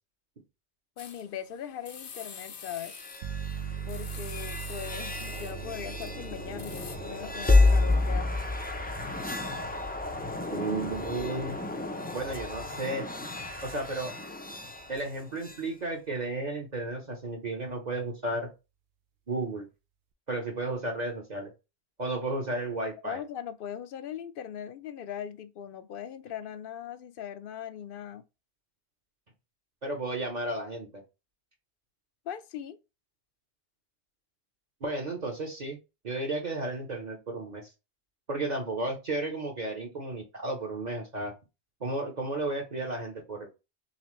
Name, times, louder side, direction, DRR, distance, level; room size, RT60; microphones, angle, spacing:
sound 1, 1.0-7.0, left 6 dB, 75° left, 1.1 m, -46 dB
voice 1, 1.0-2.9 3.9-8.3 23.0-28.2 32.3-32.8, left 9 dB, 60° left, 0.6 m, -40 dB
sound 2, 2.8-15.6, left 2 dB, 15° left, 0.3 m, -30 dB
sound 3, 3.2-13.7, right 8 dB, 80° right, 0.9 m, -42 dB
voice 2, 10.5-11.6 12.1-13.1 13.6-14.2 14.9-18.5 19.3-19.7 20.3-21.5 22.0-23.2 29.8-31.0 34.8-35.8 36.0-37.7 38.3-41.3 41.8-43.5, right 2 dB, 45° right, 0.9 m, -33 dB
4.1 x 3.4 x 3.0 m
omnidirectional pair, 1.1 m